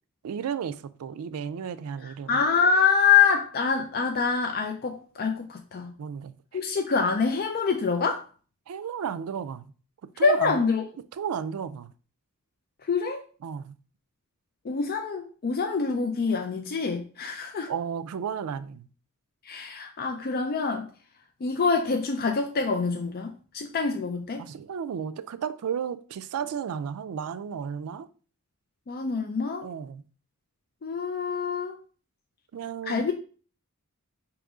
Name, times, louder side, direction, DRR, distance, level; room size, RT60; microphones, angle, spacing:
voice 1, 0.2-2.4 6.0-6.6 8.7-9.7 10.2-10.6 11.1-11.9 13.4-13.8 17.7-18.9 24.4-28.1 29.6-30.0 32.5-33.0, right 7 dB, 90° right, 0.4 m, -33 dB
voice 2, 2.0-5.9 6.5-8.2 10.2-10.9 12.9-13.2 14.6-17.7 19.5-20.9 21.4-24.4 28.9-29.7 30.8-31.7 32.9-33.1, left 5 dB, 45° left, 0.4 m, -25 dB
4.9 x 3.0 x 3.6 m
head